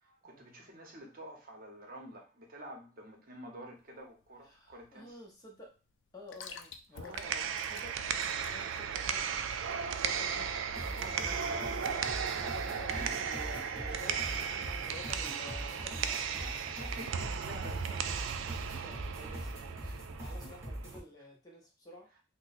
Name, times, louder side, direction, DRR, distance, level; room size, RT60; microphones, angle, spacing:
voice 1, 0.0-5.2 6.9-7.4 10.9-11.8 12.6-13.2 16.4-17.9 19.8-20.0, right 1 dB, 45° right, 1 dB, 0.8 m, -49 dB
sound 1, 3.7-10.5, left 6 dB, 65° left, 0.4 m, -52 dB
voice 2, 4.4-5.7 6.1-8.0 8.5-9.4 9.9-12.1 12.4-14.3 14.7-16.3 17.7-18.0 18.7-19.9 20.2-22.1, left 2 dB, 20° left, -1 dB, 0.6 m, -51 dB
sound 2, 6.9-20.9, right 7 dB, 70° right, 0.3 m, -36 dB
sound 3, 10.7-21.0, equal, 15° right, 0.8 m, -43 dB
2.9 x 2.1 x 4.0 m, 0.33 s
head